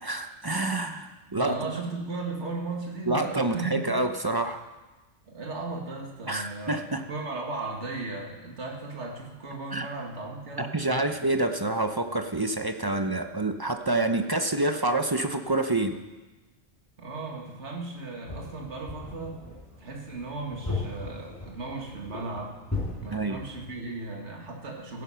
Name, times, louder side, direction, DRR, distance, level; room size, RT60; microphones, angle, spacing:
voice 1, 0.0-1.7 3.1-4.6 6.3-7.0 9.7-9.9 10.6-16.0 23.1-23.4, right 2 dB, 25° right, 7 dB, 0.5 m, -27 dB
voice 2, 1.4-3.9 5.2-10.7 11.2-11.4 17.0-19.4 19.8-22.6 23.0-25.0, right 3 dB, 70° right, 1 dB, 2.2 m, -36 dB
sound 1, 18.2-23.8, left 3 dB, 15° left, 4.3 m, -37 dB
16.0 x 9.7 x 5.7 m, 1.2 s
omnidirectional pair, 1.2 m